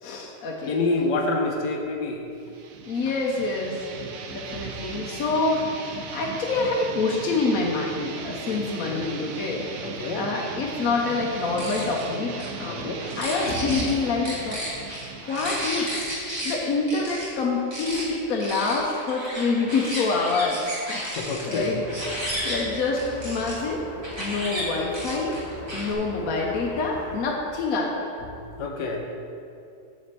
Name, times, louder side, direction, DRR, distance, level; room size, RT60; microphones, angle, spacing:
voice 1, 0.0-0.7 2.8-3.8 4.3-9.6 10.1-12.9 13.2-14.6 15.2-15.9 16.4-20.6 20.9-21.8 22.4-23.8 24.2-25.4 25.7-28.3, left 3 dB, 65° left, -2 dB, 1.1 m, -26 dB
voice 2, 0.7-2.3 8.5-9.1 9.8-10.3 12.7-13.0 21.0-21.7 28.6-29.0, left 3 dB, 90° left, 2 dB, 1.4 m, -28 dB
sound 1, 2.4-17.8, right 5 dB, 65° right, 0.9 m, -38 dB
sound 2, 11.4-12.0 12.4-12.5 13.0-13.9 14.2-16.5 16.9-17.3 17.7-18.0 18.4-23.5 24.0-24.6 24.9-25.9, equal, 15° right, 1.7 m, -33 dB
sound 3, 21.5-27.3, equal, 50° right, 1.8 m, -40 dB
7.1 x 4.3 x 6.7 m, 2.5 s
omnidirectional pair, 1.8 m